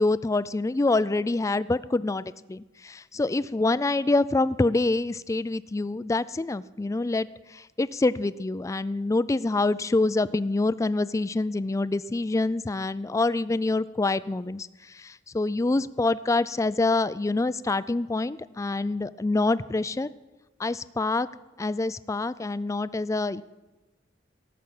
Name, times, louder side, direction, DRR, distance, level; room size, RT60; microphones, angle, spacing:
voice 1, 0.0-20.1 20.6-21.3 21.6-23.4, left 2 dB, 15° left, 16 dB, 0.3 m, -26 dB
17.5 x 6.1 x 8.6 m, 1.1 s
head